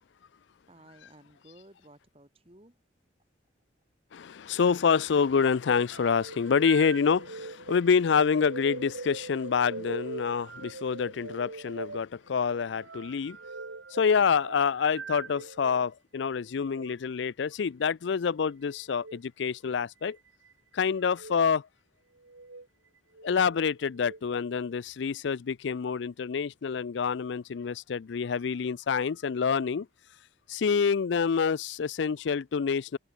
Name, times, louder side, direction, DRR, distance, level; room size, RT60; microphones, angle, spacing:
voice 1, 0.7-2.8, right 1 dB, 30° right, 4.5 m, -55 dB
voice 2, 4.1-13.4 13.9-20.2 20.7-21.7 23.2-29.9 30.5-33.0, left 6 dB, 70° left, 0.4 m, -27 dB
sound 1, 5.9-15.8 16.6-16.9 18.9-19.2 20.0-20.5 21.1-21.4 22.2-22.7 23.1-24.2, right 3 dB, 85° right, 1.9 m, -42 dB
head